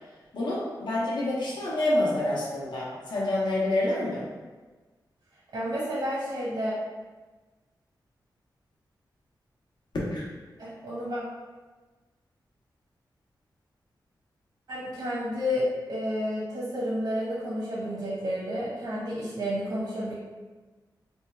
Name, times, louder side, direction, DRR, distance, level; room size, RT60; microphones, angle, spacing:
voice 1, 0.3-4.2 10.1-10.2, left 1 dB, 75° left, -6 dB, 1.0 m, -27 dB
voice 2, 5.5-6.7 10.6-11.2 14.7-20.1, equal, 75° right, -7 dB, 1.0 m, -30 dB
3.5 x 2.4 x 4.4 m, 1.3 s
wide cardioid pair, 115°, 8 cm